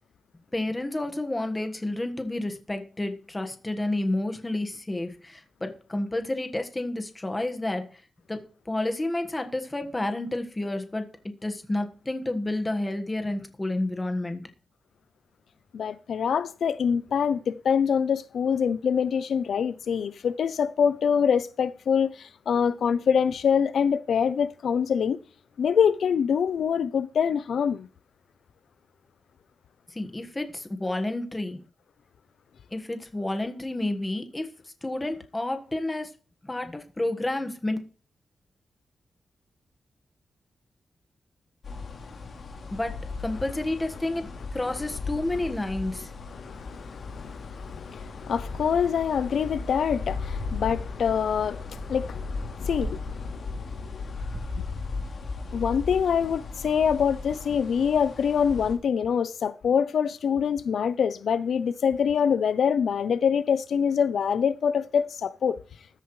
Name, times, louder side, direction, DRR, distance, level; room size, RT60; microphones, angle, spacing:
voice 1, 0.5-8.0 8.3-14.4 29.9-31.6 32.7-34.5 34.8-36.1 36.4-37.8 42.7-46.1, left 1 dB, 15° left, 1.5 m, -30 dB
voice 2, 15.7-25.2 25.6-27.9 46.3-54.0 54.6-54.7 55.5-65.6, left 7 dB, 75° left, 0.5 m, -25 dB
sound 1, 41.6-58.8, left 4 dB, 55° left, 3.6 m, -36 dB
sound 2, 48.2-53.3 54.1-54.7, right 2 dB, 45° right, 2.4 m, -46 dB
14.0 x 12.5 x 3.2 m
wide cardioid pair, 170°, 0 cm